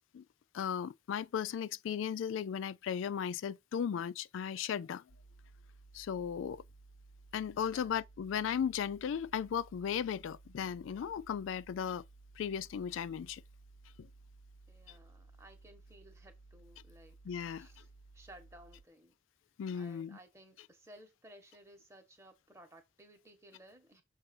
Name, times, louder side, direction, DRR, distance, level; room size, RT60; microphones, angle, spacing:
voice 1, 0.5-5.0 5.9-6.6 7.3-12.0 12.4-13.4 14.0-14.1 14.9-15.0 17.2-17.7 19.6-20.2, left 8 dB, 80° left, 0.3 m, -36 dB
sound 1, 5.1-18.9, right 3 dB, 65° left, 1.1 m, -58 dB
voice 2, 14.7-17.2 17.6-19.2 19.7-24.0, right 1 dB, 15° right, 1.4 m, -58 dB
6.9 x 2.6 x 5.3 m
head